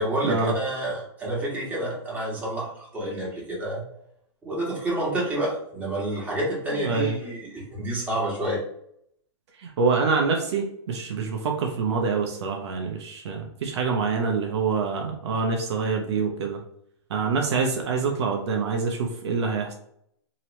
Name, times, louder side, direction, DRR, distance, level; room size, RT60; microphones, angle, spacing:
voice 1, 0.0-3.8 4.4-8.6, right 1 dB, 10° right, -6 dB, 1.4 m, -29 dB
voice 2, 6.7-7.2 9.6-16.6 17.1-19.7, right 5 dB, 70° right, 1 dB, 0.7 m, -26 dB
2.9 x 2.9 x 3.0 m, 0.71 s
hypercardioid pair, 130°, 15 cm